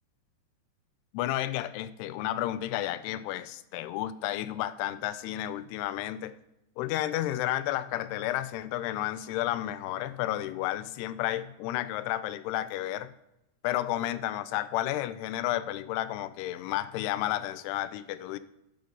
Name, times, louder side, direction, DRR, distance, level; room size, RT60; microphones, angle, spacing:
voice 1, 1.1-6.4 6.8-13.1 13.6-18.4, left 14 dB, 85° left, 14 dB, 2.6 m, -32 dB
10.5 x 6.4 x 5.3 m, 0.88 s
omnidirectional pair, 4.7 m